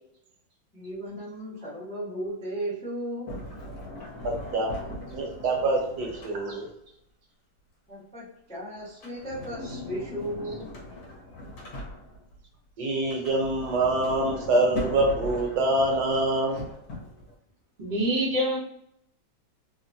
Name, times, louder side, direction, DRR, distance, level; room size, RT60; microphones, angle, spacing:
voice 1, 0.7-3.3 4.0-4.1 7.9-10.7 11.1-11.2, equal, 10° left, -7 dB, 0.3 m, -35 dB
Sliding door, 3.3-6.8 8.8-12.4 13.0-17.3, left 1 dB, 60° left, 1.0 m, -39 dB
voice 2, 4.2-6.7 12.8-16.6, right 2 dB, 65° right, 0 dB, 1.1 m, -25 dB
voice 3, 17.8-18.6, right 1 dB, 90° right, -5 dB, 0.4 m, -25 dB
3.0 x 2.1 x 2.6 m, 0.76 s
omnidirectional pair, 2.1 m